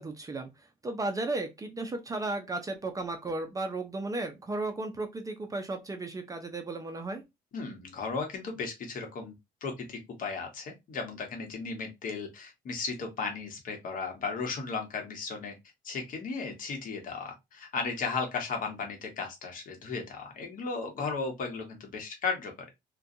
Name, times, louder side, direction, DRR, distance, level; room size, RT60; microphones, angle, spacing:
voice 1, 0.0-7.2, right 2 dB, 20° right, 0.4 m, -35 dB
voice 2, 7.5-9.3 9.6-15.5 15.8-22.7, left 4 dB, 55° left, 0.9 m, -35 dB
2.5 x 2.2 x 2.6 m
cardioid pair, 110°, 17 cm